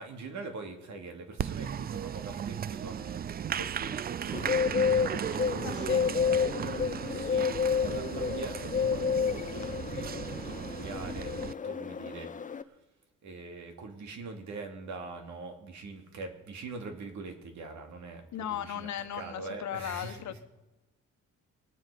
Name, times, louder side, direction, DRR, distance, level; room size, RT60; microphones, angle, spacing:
voice 1, 0.0-3.2 3.6-6.5 6.9-12.8 13.2-20.4, right 3 dB, 70° right, 4 dB, 2.6 m, -43 dB
Applause, 1.4-11.5, right 9 dB, 30° right, 0.4 m, -36 dB
Bird, 4.3-12.6, left 6 dB, 25° left, 0.7 m, -30 dB
voice 2, 5.6-6.1 18.3-20.4, left 10 dB, 65° left, 10 dB, 1.2 m, -37 dB
22.5 x 9.3 x 5.1 m, 1.1 s
cardioid pair, 90°, 30 cm